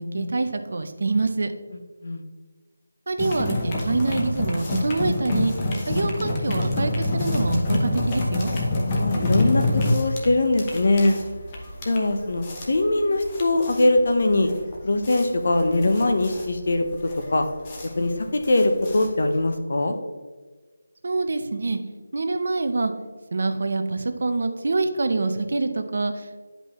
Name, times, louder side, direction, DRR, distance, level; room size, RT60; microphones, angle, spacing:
voice 1, 0.0-1.5 3.1-5.5 5.9-8.5 21.0-21.8 22.1-22.9 23.3-26.4, right 3 dB, 50° right, 8 dB, 0.7 m, -25 dB
sound 1, 3.2-19.5, left 2 dB, 20° left, 0.8 m, -27 dB
voice 2, 8.8-11.2 11.9-14.5 14.8-16.8 17.3-17.5 18.0-20.0, left 2 dB, 55° left, 6 dB, 0.9 m, -21 dB
10.0 x 5.3 x 3.1 m, 1.4 s
figure-of-eight pair, 175°, 0 cm